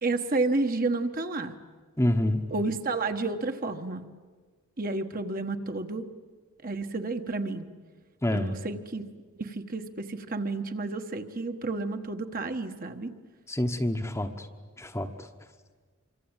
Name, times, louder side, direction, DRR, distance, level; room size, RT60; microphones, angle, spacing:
voice 1, 0.0-1.5 2.5-4.0 4.8-6.0 6.6-7.7 8.3-9.0 9.4-13.1, right 3 dB, 40° right, 6 dB, 1.3 m, -30 dB
voice 2, 2.0-2.4 8.2-8.6 13.5-14.5 14.8-15.3, left 1 dB, 15° left, 6 dB, 1.1 m, -27 dB
26.0 x 24.5 x 9.0 m, 1.5 s
head